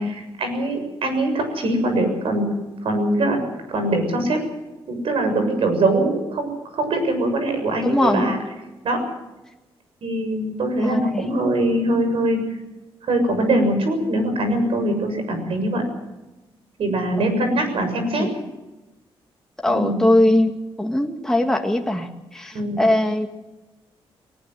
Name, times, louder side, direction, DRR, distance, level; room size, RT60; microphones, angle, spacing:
voice 1, 0.0-2.5 2.8-3.4 3.7-4.4 4.9-8.4 8.8-9.0 10.0-12.4 13.1-15.8 16.8-18.3 19.7-20.0 22.5-22.8, right 1 dB, 70° right, 6 dB, 7.0 m, -22 dB
voice 2, 7.8-8.3 10.8-11.3 18.2-18.3 19.6-20.5 20.8-23.3, left 1 dB, 5° left, 3 dB, 2.0 m, -20 dB
21.0 x 19.0 x 7.8 m, 1.0 s
cardioid pair, 100°, 10 cm